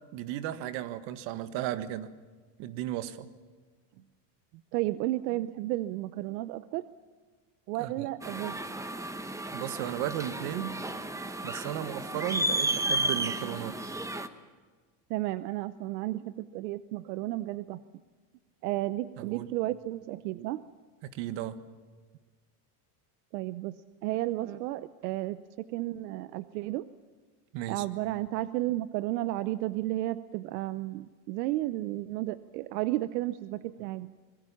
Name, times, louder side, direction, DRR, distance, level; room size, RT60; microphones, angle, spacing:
voice 1, 0.1-2.1 2.6-3.3 7.8-8.1 9.5-10.8 11.4-13.8 19.2-19.5 21.0-21.6 27.5-27.8, right 12 dB, 65° right, 12 dB, 1.7 m, -35 dB
voice 2, 4.7-6.8 7.7-8.6 15.1-17.8 18.6-20.6 23.3-26.9 27.7-34.1, right 16 dB, 85° right, 14 dB, 0.9 m, -33 dB
надувные объекты, 8.2-14.3, right 1 dB, 5° right, 1.0 m, -33 dB
25.5 x 22.0 x 7.2 m, 1.4 s
supercardioid pair, 140°, 47 cm